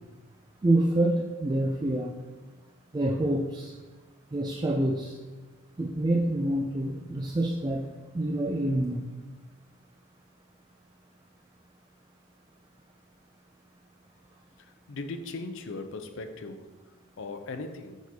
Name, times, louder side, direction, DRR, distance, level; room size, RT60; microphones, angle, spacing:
voice 1, 0.6-2.1 2.9-3.7 4.3-5.2 5.8-7.9 8.1-9.0, right 1 dB, 20° right, 0 dB, 0.3 m, -27 dB
voice 2, 14.9-16.7 17.2-18.0, left 3 dB, 60° left, 7 dB, 0.5 m, -38 dB
6.4 x 6.1 x 2.8 m, 1.2 s
head